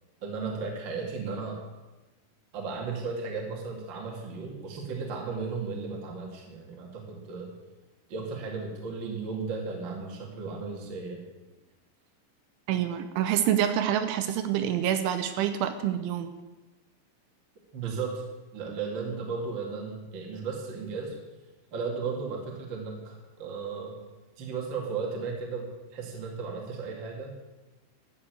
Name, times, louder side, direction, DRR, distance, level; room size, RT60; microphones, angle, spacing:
voice 1, 0.2-1.6 2.5-7.5 8.1-11.2 17.7-18.2 18.5-21.1 21.7-23.9 24.4-27.3, right 4 dB, 40° right, 0 dB, 1.7 m, -35 dB
voice 2, 12.7-16.3, right 10 dB, 80° right, 8 dB, 3.1 m, -27 dB
12.5 x 6.7 x 8.2 m, 1.1 s
omnidirectional pair, 5.6 m